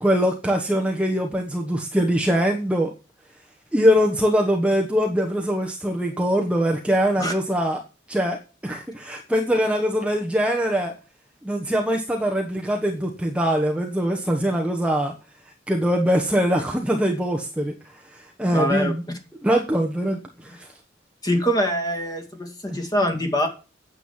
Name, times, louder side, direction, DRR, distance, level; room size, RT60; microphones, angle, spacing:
voice 1, 0.0-2.9 3.7-7.8 8.1-10.9 11.4-15.1 15.7-17.7 18.4-19.0 19.4-20.7 22.7-22.8, equal, 5° right, 1 dB, 1.1 m, -22 dB
voice 2, 18.5-18.9 21.2-23.5, equal, 20° left, 4 dB, 2.3 m, -23 dB
9.2 x 7.6 x 7.4 m, 0.34 s
head